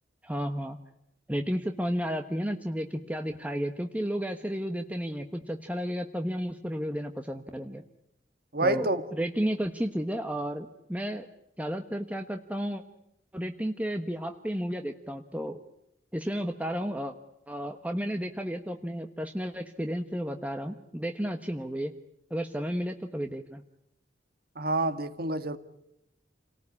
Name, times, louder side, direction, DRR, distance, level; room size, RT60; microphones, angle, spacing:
voice 1, 0.2-0.8 1.3-7.8 8.6-11.3 11.6-12.8 13.3-15.6 16.1-17.1 17.5-21.9 22.3-23.6, equal, 10° right, 1.2 m, -32 dB
voice 2, 8.5-9.0 24.6-25.6, right 2 dB, 55° right, 1.9 m, -27 dB
30.0 x 19.0 x 9.8 m
head